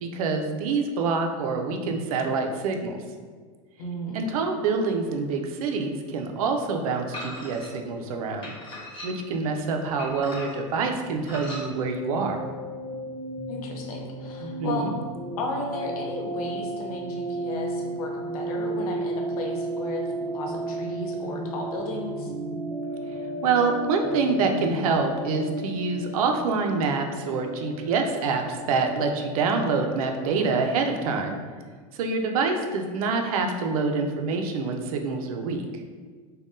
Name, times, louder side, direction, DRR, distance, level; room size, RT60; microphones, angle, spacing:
voice 1, 0.0-3.0 4.1-8.5 9.0-12.4 14.4-14.9 23.4-31.4 32.0-35.7, right 4 dB, 80° right, 4 dB, 0.4 m, -26 dB
voice 2, 3.8-4.2 13.5-14.9 15.4-22.3, left 2 dB, 85° left, 0 dB, 0.6 m, -34 dB
sound 1, 7.1-7.7 8.4-9.4 10.0-10.7 11.2-11.7, left 1 dB, 25° left, 1.2 m, -38 dB
sound 2, 11.1-30.7, right 1 dB, 5° right, 0.4 m, -34 dB
3.4 x 2.1 x 2.5 m, 1.6 s
hypercardioid pair, 105°, 18 cm